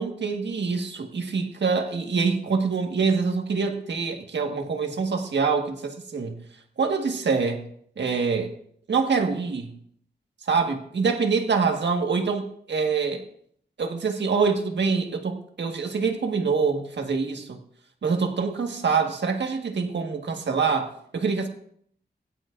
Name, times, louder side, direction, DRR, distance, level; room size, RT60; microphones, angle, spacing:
voice 1, 0.0-6.4 6.8-7.6 8.0-8.5 8.9-9.7 10.4-13.2 13.8-17.6 18.0-21.5, right 5 dB, 90° right, 3 dB, 1.5 m, -25 dB
21.5 x 11.0 x 2.5 m, 0.64 s
wide cardioid pair, 85°, 18 cm